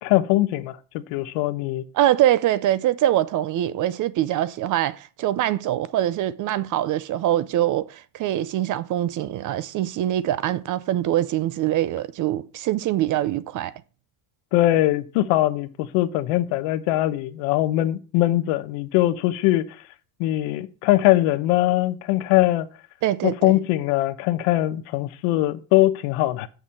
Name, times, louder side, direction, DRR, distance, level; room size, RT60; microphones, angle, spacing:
voice 1, 0.0-1.8 14.5-19.6 20.2-22.7 23.2-26.5, left 15 dB, 80° left, 1.1 m, -21 dB
voice 2, 1.9-13.7 23.0-23.6, right 13 dB, 40° right, 0.4 m, -23 dB
7.1 x 6.4 x 7.5 m
cardioid pair, 160°, 50 cm